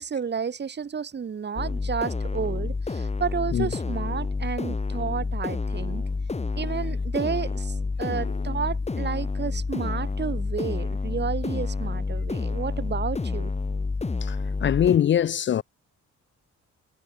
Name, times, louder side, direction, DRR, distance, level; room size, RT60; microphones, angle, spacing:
voice 1, 0.0-6.0 6.5-13.5, right 6 dB, 35° right, 1.3 m, -31 dB
sound 1, 1.6-15.0, left 3 dB, 20° left, 1.9 m, -29 dB
voice 2, 14.6-15.6, left 10 dB, 40° left, 0.4 m, -22 dB
cardioid pair, 90°, 30 cm